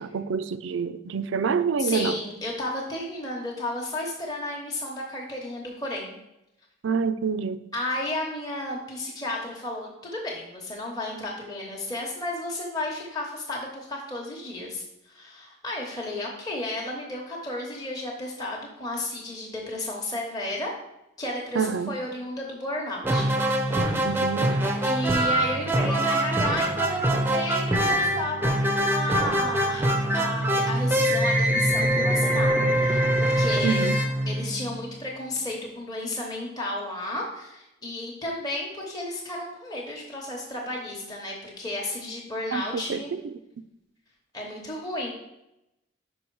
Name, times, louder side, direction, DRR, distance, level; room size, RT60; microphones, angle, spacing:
voice 1, 0.0-2.2 6.8-7.6 21.6-22.0 24.0-24.6 33.6-34.0 42.5-43.4, right 5 dB, 70° right, 13 dB, 0.4 m, -27 dB
voice 2, 1.8-6.1 7.7-20.7 21.2-24.0 24.8-29.9 30.1-33.8 34.3-43.1 44.3-45.1, left 1 dB, 20° left, -2 dB, 0.9 m, -33 dB
sound 1, 23.0-34.9, right 1 dB, 10° right, 0.5 m, -24 dB
5.4 x 5.1 x 4.6 m, 0.88 s
head